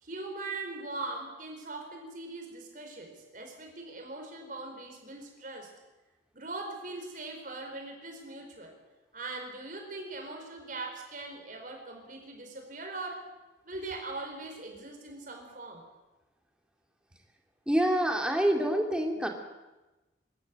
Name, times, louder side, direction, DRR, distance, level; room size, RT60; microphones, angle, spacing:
voice 1, 0.0-5.7 6.3-8.7 9.1-13.2 13.6-15.8, right 2 dB, 45° right, 3 dB, 4.6 m, -41 dB
voice 2, 17.7-19.3, right 1 dB, 5° right, 2 dB, 2.3 m, -26 dB
23.0 x 13.0 x 9.5 m, 1.1 s
head